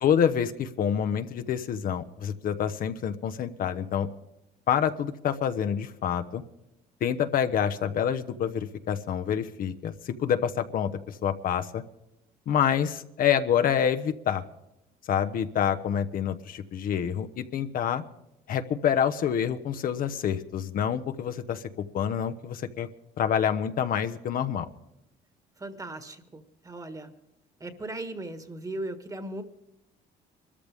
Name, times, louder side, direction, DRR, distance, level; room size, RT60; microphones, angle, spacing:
voice 1, 0.0-4.1 4.7-6.4 7.0-11.8 12.5-14.4 15.1-18.0 18.5-21.6 21.9-22.9 23.2-24.7, left 8 dB, 55° left, 9 dB, 0.9 m, -27 dB
voice 2, 25.6-27.1 27.6-29.4, right 2 dB, 20° right, 9 dB, 1.6 m, -37 dB
24.5 x 13.5 x 3.6 m, 0.88 s
cardioid pair, 110°, 17 cm